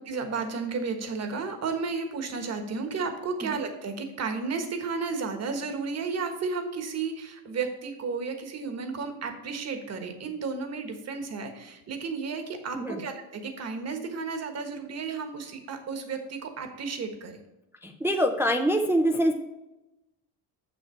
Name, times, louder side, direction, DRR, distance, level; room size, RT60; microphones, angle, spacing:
voice 1, 0.0-17.4, right 4 dB, 35° right, 6 dB, 1.3 m, -33 dB
voice 2, 17.8-19.3, equal, 5° right, 3 dB, 0.4 m, -24 dB
7.7 x 6.7 x 4.4 m, 0.97 s
cardioid pair, 165°, 42 cm